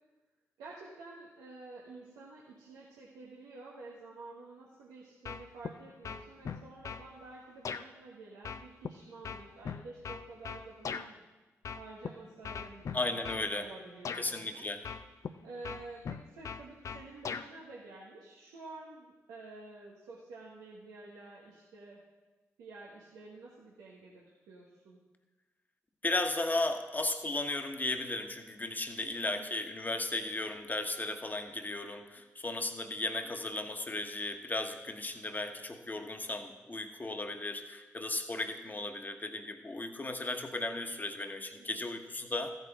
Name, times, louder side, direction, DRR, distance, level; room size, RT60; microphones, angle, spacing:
voice 1, 0.6-11.3 11.7-13.0 13.4-14.7 15.2-22.0 22.6-25.0 29.1-29.5 32.2-32.3 41.5-41.9, right 3 dB, 85° right, -5 dB, 1.3 m, -50 dB
sound 1, 5.3-5.8 6.0-7.1 7.7-7.8 8.5-11.1 11.6-12.1 12.4-13.5 14.1-14.2 14.9-15.3 15.6-17.5, left 6 dB, 60° left, 0.5 m, -39 dB
voice 2, 12.9-13.7 14.2-14.8 26.0-42.5, left 2 dB, 30° left, 6 dB, 1.3 m, -35 dB
14.0 x 8.7 x 3.6 m, 1.2 s
supercardioid pair, 40°, 6 cm